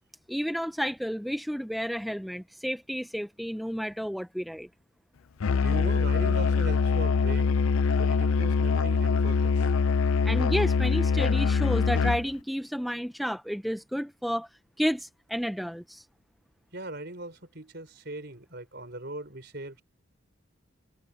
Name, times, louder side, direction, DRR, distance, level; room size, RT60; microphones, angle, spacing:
voice 1, 0.3-4.7 10.2-14.5 14.8-16.0, equal, ahead, 0.5 m, -31 dB
Musical instrument, 5.4-12.3, left 5 dB, 85° left, 0.5 m, -24 dB
voice 2, 5.5-7.5 8.0-9.7 16.7-19.8, right 1 dB, 50° right, 4.7 m, -39 dB
head